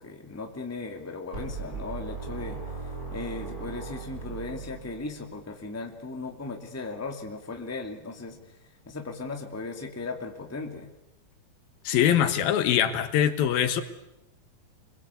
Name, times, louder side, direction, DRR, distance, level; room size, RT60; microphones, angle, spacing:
voice 1, 0.0-2.6 3.1-8.4 8.9-10.9, left 3 dB, 5° left, 4 dB, 1.8 m, -37 dB
sound 1, 1.3-5.3, right 4 dB, 20° right, 8.0 m, -38 dB
voice 2, 11.8-13.8, left 10 dB, 80° left, 10 dB, 3.2 m, -23 dB
27.0 x 21.5 x 8.3 m, 0.87 s
omnidirectional pair, 4.2 m